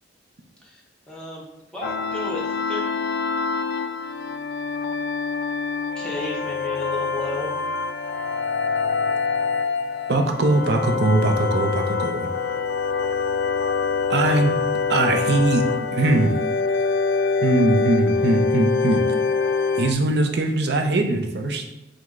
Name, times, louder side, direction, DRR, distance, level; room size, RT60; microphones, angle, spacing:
voice 1, 0.6-2.8 5.9-7.5, left 2 dB, 5° left, -4 dB, 0.9 m, -33 dB
sound 1, 1.8-19.9, left 5 dB, 75° left, 0.3 m, -25 dB
voice 2, 10.1-12.3 14.1-14.6 14.9-16.3 17.4-19.0 19.8-21.7, right 2 dB, 65° right, 4 dB, 0.5 m, -21 dB
4.8 x 2.1 x 3.6 m, 0.91 s
head